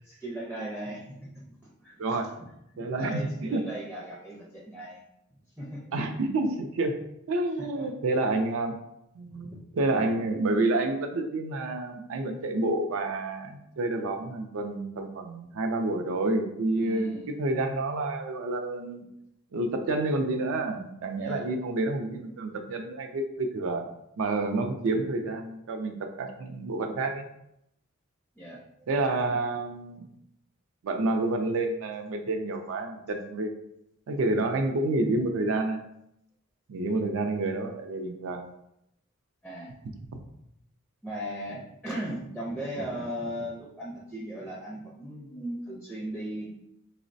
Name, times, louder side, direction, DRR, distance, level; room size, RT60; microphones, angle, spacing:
voice 1, 0.0-1.5 1.8-2.3 2.7-5.0 5.6-5.8 7.8-7.9 9.3-9.5 16.8-17.3 21.2-21.5 28.4-28.6 39.4-39.7 41.0-46.5, equal, ahead, -4 dB, 0.4 m, -37 dB
voice 2, 2.8-3.6 5.9-7.0 7.3-8.8 9.1-19.1 19.5-23.9 24.2-27.3 28.9-30.0 30.8-33.5 34.1-35.8 36.7-38.5, right 2 dB, 65° right, 6 dB, 0.4 m, -29 dB
3.9 x 2.0 x 2.5 m, 0.80 s
head